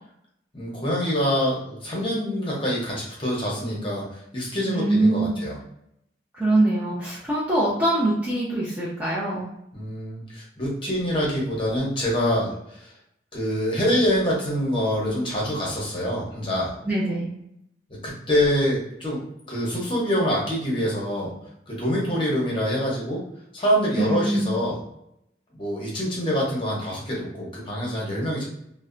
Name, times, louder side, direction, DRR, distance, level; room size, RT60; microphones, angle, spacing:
voice 1, 0.5-5.6 9.7-12.9 13.3-16.7 18.0-19.2 19.5-21.3 21.7-23.2 23.5-24.8 25.5-28.5, equal, 30° left, -4 dB, 0.8 m, -25 dB
voice 2, 4.7-5.4 6.3-9.5 16.8-17.3 24.0-24.6, right 1 dB, 10° right, -8 dB, 0.4 m, -23 dB
2.6 x 2.1 x 2.4 m, 0.77 s
head